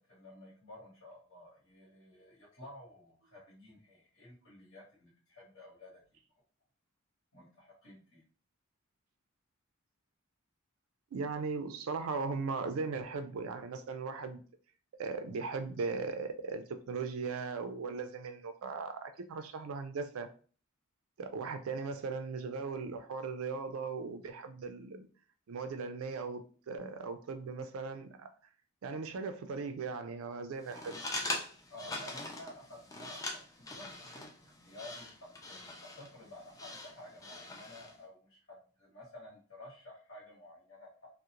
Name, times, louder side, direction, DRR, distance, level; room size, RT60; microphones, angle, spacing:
voice 1, 0.0-6.0 7.3-8.2 31.7-35.1 35.5-41.1, left 1 dB, 60° left, -8 dB, 1.0 m, -52 dB
voice 2, 11.1-14.4 14.9-20.3 21.2-25.1 25.5-28.3 28.8-31.0, right 4 dB, 80° right, 8 dB, 0.4 m, -38 dB
sound 1, 30.6-38.0, left 2 dB, 15° left, 0.3 m, -42 dB
2.4 x 2.1 x 2.8 m, 0.41 s
head